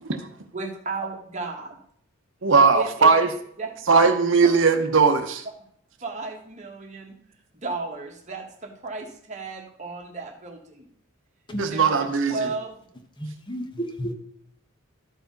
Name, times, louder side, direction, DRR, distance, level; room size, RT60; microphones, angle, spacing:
voice 1, 0.5-1.8 2.7-3.1 3.6-3.7 4.4-4.6 6.0-7.2 7.5-10.9 11.6-13.0, right 3 dB, 35° right, 2 dB, 1.5 m, -34 dB
voice 2, 2.4-3.3 3.9-5.4 11.6-12.5, right 4 dB, 65° right, 7 dB, 0.8 m, -19 dB
voice 3, 13.2-14.1, right 1 dB, 20° left, 5 dB, 1.0 m, -31 dB
13.0 x 4.8 x 5.2 m, 0.65 s
head